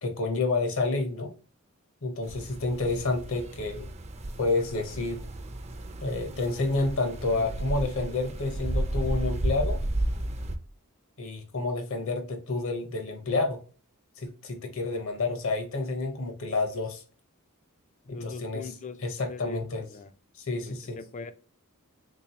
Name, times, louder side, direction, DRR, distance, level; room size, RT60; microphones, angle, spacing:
voice 1, 0.0-1.3 2.0-3.9 4.4-5.2 6.0-9.8 11.2-13.6 14.2-17.0 18.1-18.7 19.0-19.8 20.3-21.0, left 3 dB, 65° left, 1.0 m, -29 dB
sound 1, 2.2-10.6, right 1 dB, 30° right, 0.5 m, -33 dB
voice 2, 18.1-20.1 20.6-21.3, left 4 dB, 35° left, 0.4 m, -41 dB
3.6 x 3.0 x 2.8 m
head